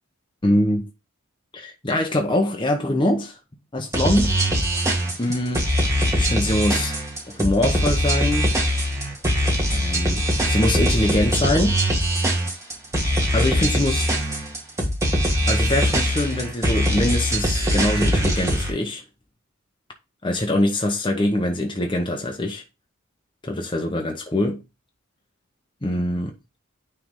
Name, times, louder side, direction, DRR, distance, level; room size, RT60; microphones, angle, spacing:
voice 1, 0.4-0.9 1.5-3.4 3.7-4.4 5.2-5.7 6.1-6.9 7.3-8.5 9.7-11.8 13.3-14.1 15.5-19.0 20.2-22.6 23.4-24.6 25.8-26.3, left 1 dB, 20° left, 0.9 m, -23 dB
sound 1, 3.9-18.7, equal, 15° right, 1.5 m, -22 dB
9.2 x 3.5 x 3.7 m
head